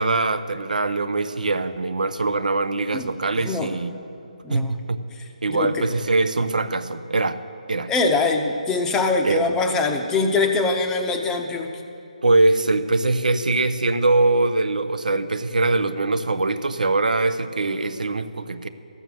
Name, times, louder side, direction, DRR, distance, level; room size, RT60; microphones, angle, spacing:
voice 1, 0.0-3.9 4.5-5.0 5.4-7.4 7.7-7.9 9.2-9.5 12.2-18.7, right 2 dB, 90° right, 11 dB, 0.7 m, -22 dB
voice 2, 3.4-3.7 4.4-4.8 5.5-5.9 7.9-11.8, left 3 dB, 10° left, 5 dB, 0.6 m, -23 dB
14.0 x 6.8 x 7.6 m, 2.6 s
hypercardioid pair, 155°, 4 cm